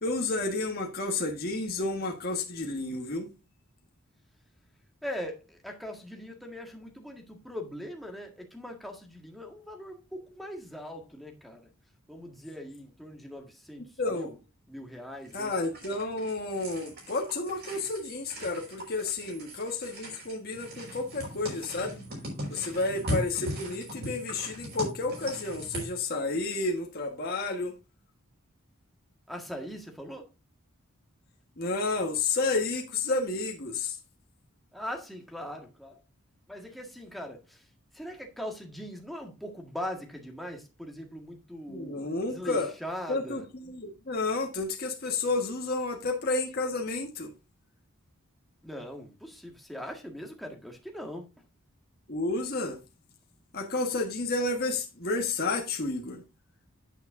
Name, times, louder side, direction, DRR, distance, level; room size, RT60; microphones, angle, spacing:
voice 1, 0.0-3.3 14.0-14.3 15.3-22.0 22.5-27.7 31.6-34.0 41.7-42.7 43.1-47.3 52.1-52.8 53.5-56.2, left 3 dB, 45° left, 1.5 m, -31 dB
voice 2, 5.0-11.7 12.1-13.8 14.1-14.3 14.7-15.5 29.3-30.3 34.7-36.0 36.5-37.6 37.9-42.0 42.3-43.4 48.6-51.3, equal, ahead, 1.8 m, -40 dB
sound 1, 15.2-25.9, equal, 50° right, 5.2 m, -39 dB
9.2 x 9.2 x 2.6 m
head